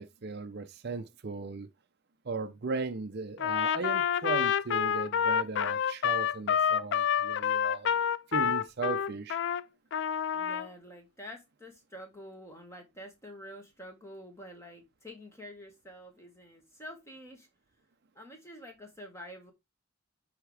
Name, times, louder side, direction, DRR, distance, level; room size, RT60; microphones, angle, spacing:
voice 1, 0.0-1.7 2.2-7.9 8.3-9.4, right 4 dB, 45° right, 0.5 m, -37 dB
Trumpet, 3.4-9.6 9.9-10.7, left 8 dB, 55° left, 0.3 m, -28 dB
voice 2, 10.3-17.5 18.1-19.5, equal, 15° left, 1.6 m, -48 dB
9.6 x 3.6 x 3.3 m
head